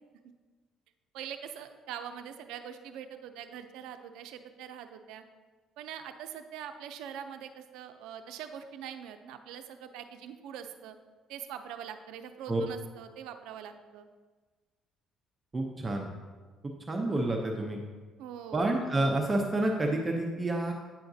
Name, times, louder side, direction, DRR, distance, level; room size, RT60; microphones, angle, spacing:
voice 1, 1.1-5.2 5.8-11.0 11.3-14.1 18.2-18.7, right 9 dB, 90° right, 8 dB, 0.5 m, -43 dB
voice 2, 15.5-16.1 16.6-17.8 18.5-20.7, right 2 dB, 20° right, 1 dB, 0.6 m, -29 dB
8.9 x 5.7 x 2.7 m, 1.4 s
cardioid pair, 120°, 0 cm